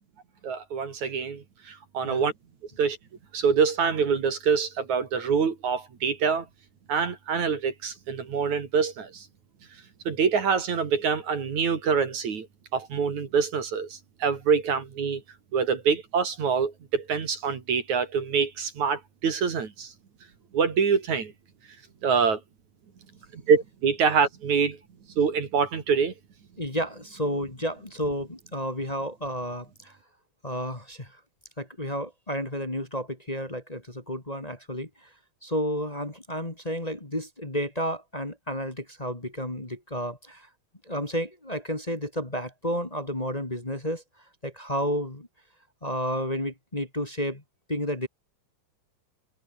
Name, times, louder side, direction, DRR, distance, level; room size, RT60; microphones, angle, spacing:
voice 1, 0.4-2.3 2.8-3.0 3.3-6.5 6.9-9.3 10.1-12.5 12.7-15.2 15.5-19.9 20.5-21.3 22.0-22.4 23.3-24.8 25.2-26.1, right 6 dB, 50° right, 3.8 m, -25 dB
voice 2, 26.6-29.9 30.4-31.1 31.6-34.9 35.4-40.5 40.8-44.0 44.4-45.3 45.8-47.4 47.7-48.1, equal, 15° left, 1.4 m, -31 dB
omnidirectional pair, 4.6 m